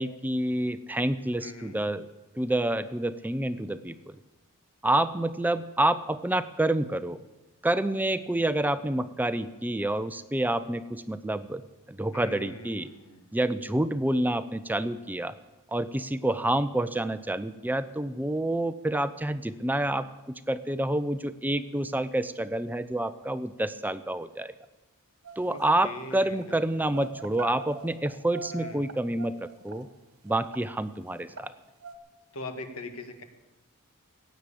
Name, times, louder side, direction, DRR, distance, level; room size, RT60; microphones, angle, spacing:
voice 1, 0.0-2.1 2.4-4.2 4.8-7.2 7.6-11.6 11.9-12.9 13.3-15.3 15.7-24.5 25.4-29.9 30.2-31.5, right 1 dB, 10° right, 12 dB, 0.5 m, -28 dB
voice 2, 1.4-1.8 12.1-13.4 25.5-26.5 26.8-27.1 28.5-28.9 32.3-33.2, left 2 dB, 85° left, 7 dB, 1.8 m, -42 dB
sound 1, 25.2-25.7 26.3-26.5 26.9-29.8 30.3-30.6 31.2-31.5 31.8-32.0, right 4 dB, 80° right, 1.4 m, -42 dB
15.5 x 9.2 x 8.5 m, 1.1 s
head